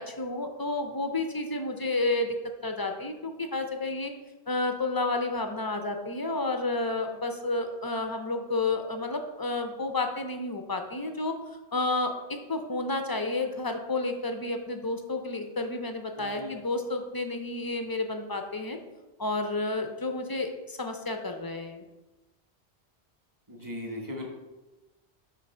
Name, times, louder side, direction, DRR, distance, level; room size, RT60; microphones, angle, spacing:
voice 1, 0.0-2.3 2.6-4.1 4.5-11.4 11.7-12.1 12.5-18.8 19.2-21.8, left 2 dB, 40° left, 5 dB, 0.3 m, -31 dB
voice 2, 16.2-16.6 23.5-24.3, left 1 dB, 20° right, -1 dB, 1.2 m, -37 dB
6.6 x 3.2 x 5.5 m, 1.1 s
omnidirectional pair, 1.1 m